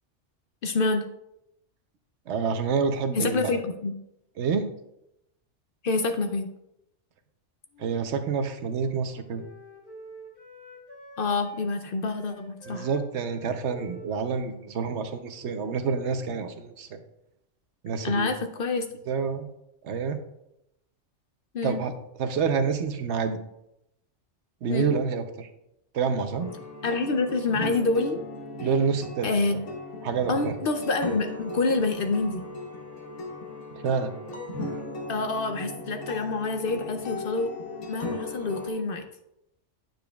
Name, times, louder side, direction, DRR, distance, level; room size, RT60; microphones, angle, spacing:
voice 1, 0.6-1.1 3.1-3.9 5.8-6.5 11.2-12.9 18.0-18.9 21.5-21.8 24.7-24.9 26.8-28.2 29.2-29.6 30.3-32.4 35.1-37.5 37.9-39.1, left 3 dB, 60° left, 6 dB, 0.7 m, -27 dB
voice 2, 2.3-3.6 4.4-4.7 7.8-9.4 12.7-17.0 17.8-18.3 19.1-19.5 19.8-20.2 21.6-21.9 22.2-23.4 24.6-25.5 25.9-26.5 28.6-29.6 30.0-30.5 33.8-34.1, right 5 dB, 70° right, 8 dB, 0.9 m, -28 dB
Wind instrument woodwind instrument, 7.7-11.7 12.1-16.5, equal, 40° left, 1.6 m, -49 dB
sound 1, 26.4-38.7, left 2 dB, 80° left, 1.3 m, -37 dB
9.2 x 6.9 x 2.3 m, 0.82 s
omnidirectional pair, 1.2 m